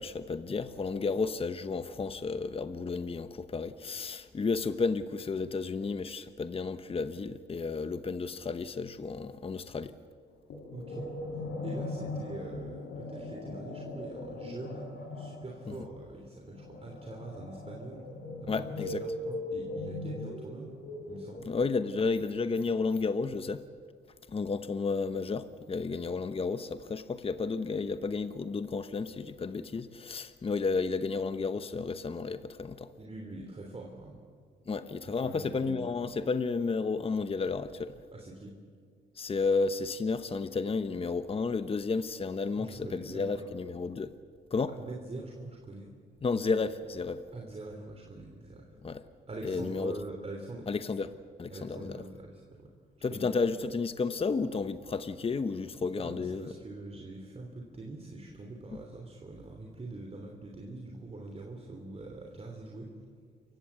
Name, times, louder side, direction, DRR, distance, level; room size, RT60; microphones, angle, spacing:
voice 1, 0.0-9.9 15.7-15.8 18.5-19.0 21.5-23.6 24.3-32.9 34.7-37.9 39.2-44.1 44.5-44.7 46.2-47.2 48.8-49.0 49.4-50.0 50.7-51.1 51.4-52.0 53.0-56.5, left 4 dB, 30° left, 1.0 m, -32 dB
sound 1, 10.5-21.8, left 2 dB, 65° left, 5.0 m, -39 dB
voice 2, 10.7-11.1 11.6-14.9 15.1-18.0 18.4-20.7 21.1-21.5 33.0-34.2 35.0-35.9 38.1-38.5 42.6-43.5 44.7-45.9 47.3-48.8 49.3-50.7 51.5-52.7 53.1-53.3 55.9-62.9, right 2 dB, 30° right, 3.2 m, -44 dB
28.5 x 15.5 x 8.3 m
cardioid pair, 90°, 20 cm